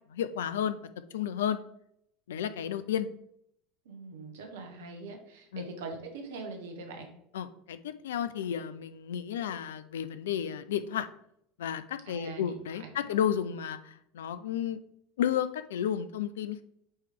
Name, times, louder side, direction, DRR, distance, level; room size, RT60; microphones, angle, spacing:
voice 1, 0.1-0.8 1.1-1.6 2.3-3.1 5.5-5.6 7.3-11.1 11.6-14.8 15.2-16.6, left 9 dB, 75° left, 12 dB, 0.4 m, -32 dB
voice 2, 3.8-7.1 12.0-13.2, right 3 dB, 75° right, 3 dB, 1.2 m, -43 dB
8.8 x 3.2 x 3.5 m, 0.72 s
hypercardioid pair, 80°, 0 cm